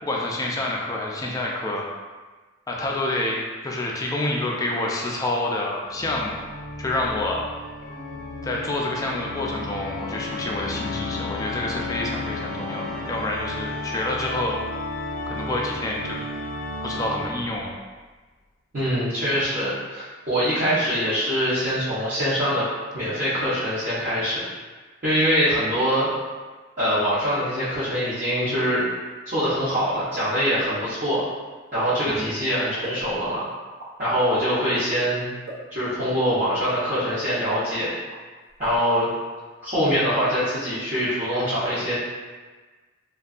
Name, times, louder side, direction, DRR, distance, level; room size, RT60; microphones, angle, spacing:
voice 1, 0.0-1.8 2.7-3.4 3.6-6.4 6.8-7.4 8.4-14.6 15.3-16.2 16.8-17.7 32.0-32.3, left 2 dB, 20° left, -2 dB, 0.3 m, -28 dB
Organ, 5.9-17.7, left 2 dB, 80° left, 0.4 m, -33 dB
voice 2, 18.7-22.7 22.9-24.4 25.0-26.1 26.8-28.8 29.3-31.3 31.7-33.4 34.0-35.3 35.7-37.9 38.6-39.1 39.6-41.9, equal, 40° right, -15 dB, 0.7 m, -23 dB
sound 1, 30.6-30.9 31.7-32.0 32.8-33.4 33.8-33.9 34.3-34.5 35.5-35.8 36.5-36.7 37.3-37.8 38.1-38.2 38.5-39.0, right 1 dB, 85° right, 0.7 m, -37 dB
2.6 x 2.2 x 2.4 m, 1.4 s
head